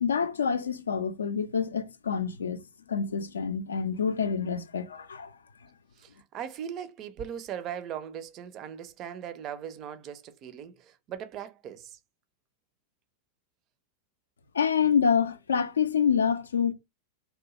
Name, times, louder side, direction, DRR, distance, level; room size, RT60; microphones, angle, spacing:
voice 1, 0.0-2.6 2.9-5.3 14.5-16.7, left 6 dB, 70° left, 0.4 m, -27 dB
voice 2, 6.0-12.0, right 9 dB, 35° right, 0.4 m, -39 dB
2.8 x 2.1 x 2.9 m
figure-of-eight pair, 90°, 0 cm